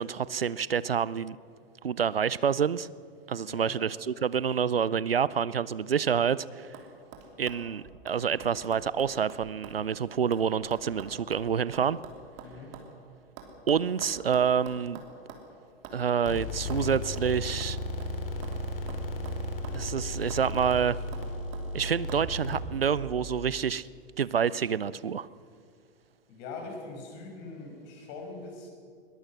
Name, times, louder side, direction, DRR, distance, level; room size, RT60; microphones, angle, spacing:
voice 1, 0.0-1.4 1.8-2.9 3.3-6.7 7.4-12.0 13.7-15.0 15.9-17.8 19.7-21.0 21.7-23.9 24.2-25.3, right 7 dB, 80° right, 20 dB, 0.6 m, -28 dB
sound 1, 6.0-6.4 6.7-6.9 7.1-9.8 10.1-12.9 13.4-15.5 15.8-16.0 16.3-16.4 16.7-16.8 17.2-17.3 17.6-18.6 18.9-19.9 20.3-20.4 20.7-21.7 22.1-22.2, right 6 dB, 35° right, 3.1 m, -46 dB
voice 2, 12.4-12.7 26.3-28.7, left 3 dB, 40° left, 2 dB, 5.8 m, -42 dB
sound 2, 16.3-23.1, left 1 dB, 70° left, 3.8 m, -35 dB
21.5 x 20.0 x 6.2 m, 2.2 s
figure-of-eight pair, 100°, 29 cm